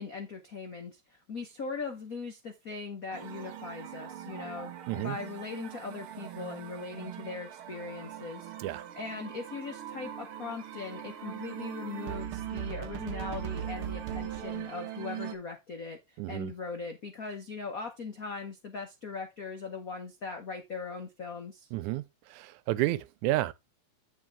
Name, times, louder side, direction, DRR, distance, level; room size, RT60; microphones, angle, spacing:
voice 1, 0.0-8.5 9.0-21.7, left 4 dB, 85° left, 0.7 m, -40 dB
sound 1, 3.1-15.3, right 10 dB, 60° right, 1.6 m, -40 dB
voice 2, 4.9-5.2 8.6-8.9 16.2-16.5 21.7-23.5, right 16 dB, 90° right, 2.0 m, -31 dB
9.6 x 4.6 x 3.5 m
omnidirectional pair, 3.4 m